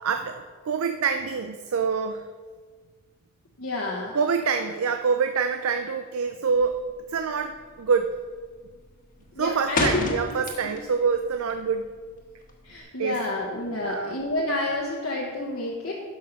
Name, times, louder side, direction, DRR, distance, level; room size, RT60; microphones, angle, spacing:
voice 1, 0.0-2.3 4.1-6.8 7.1-8.1 9.4-11.9 13.0-13.2 13.8-14.2, right 5 dB, 85° right, 7 dB, 0.5 m, -26 dB
voice 2, 3.6-4.2 9.3-10.2 10.6-10.7 12.6-15.9, left 2 dB, 70° left, -3 dB, 1.3 m, -29 dB
sound 1, 6.5-6.9 7.2-7.6 7.9-8.3 8.7-11.0 11.3-12.8, left 2 dB, 40° left, 1.4 m, -29 dB
12.0 x 5.7 x 5.8 m, 1.5 s
head